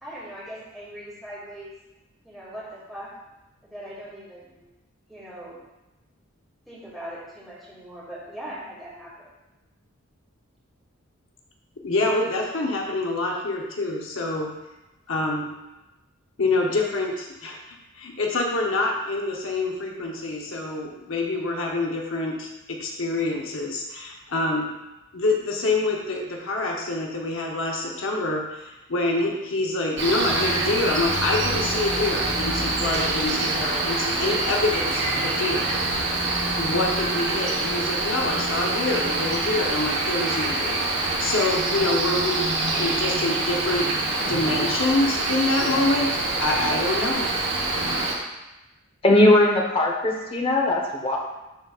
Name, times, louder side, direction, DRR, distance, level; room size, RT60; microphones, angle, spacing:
voice 1, 0.0-1.7 2.2-3.1 3.6-4.6 5.1-5.6 6.7-9.3, right 1 dB, ahead, -9 dB, 2.3 m, -40 dB
voice 2, 11.8-14.5 15.1-15.5 16.4-17.6 17.9-24.7 25.1-35.6 36.6-43.9 44.3-47.3, left 2 dB, 65° left, -1 dB, 0.8 m, -26 dB
Cricket, 30.0-48.1, right 2 dB, 60° right, 1.1 m, -25 dB
voice 3, 49.0-51.2, left 1 dB, 25° left, 0 dB, 0.9 m, -19 dB
11.5 x 3.9 x 2.4 m, 1.0 s
head